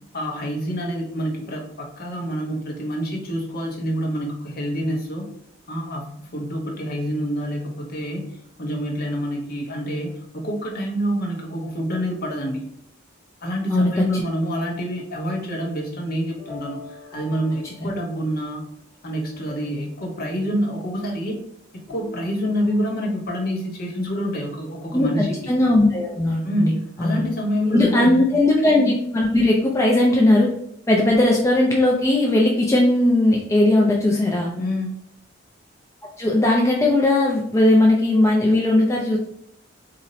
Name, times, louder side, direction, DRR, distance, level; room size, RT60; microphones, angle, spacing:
voice 1, 0.1-5.3 5.7-8.3 8.6-12.6 13.4-18.6 19.0-21.4 21.7-25.4 26.4-28.1 34.5-34.9, equal, 50° left, 0 dB, 0.7 m, -27 dB
voice 2, 13.7-14.0 17.8-17.9 24.9-25.1 25.5-26.7 27.0-27.2 27.7-30.5 30.9-34.5 36.2-39.2, left 1 dB, 15° left, -2 dB, 0.3 m, -18 dB
sound 1, 16.4-18.5 19.0-20.1 21.9-23.3, left 2 dB, 10° right, 0.7 m, -44 dB
2.5 x 2.0 x 3.9 m, 0.70 s
head